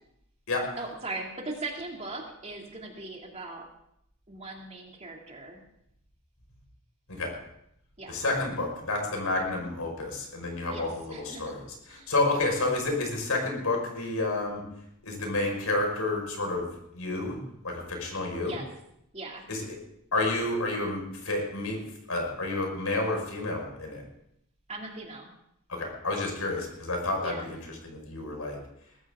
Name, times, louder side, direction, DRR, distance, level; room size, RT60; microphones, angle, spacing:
voice 1, 0.8-3.6 4.3-5.6 8.0-8.1 9.3-9.7 10.7-11.5 11.9-12.4 18.4-18.7 19.1-19.4 24.7-25.3 27.2-27.5, right 2 dB, 30° right, 0 dB, 2.6 m, -39 dB
voice 2, 8.1-14.6 15.0-16.7 16.9-17.4 17.6-18.6 19.5-19.6 20.1-21.8 22.1-24.0 25.7-28.6, left 2 dB, 80° left, 2 dB, 5.2 m, -30 dB
21.0 x 14.5 x 3.7 m, 0.77 s
head